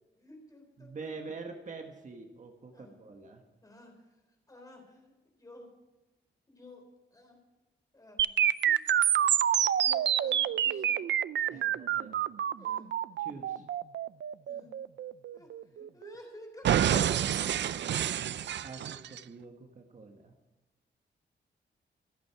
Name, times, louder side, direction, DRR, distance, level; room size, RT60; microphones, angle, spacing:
voice 1, 0.1-1.2 2.7-3.0 3.6-4.2 4.5-5.1 5.4-5.7 6.5-7.4 7.9-8.8 9.8-11.0 11.5-11.8 12.6-12.9 14.5-14.7 15.3-17.5, left 1 dB, 20° left, 2 dB, 4.0 m, -52 dB
voice 2, 0.8-3.4 11.5-12.2 13.2-13.7 18.6-20.3, right 4 dB, 40° right, 4 dB, 1.4 m, -45 dB
sound 1, 8.2-16.1 16.6-19.2, right 10 dB, 70° right, 0.5 m, -28 dB
25.5 x 8.8 x 4.7 m, 1.1 s
wide cardioid pair, 175°, 19 cm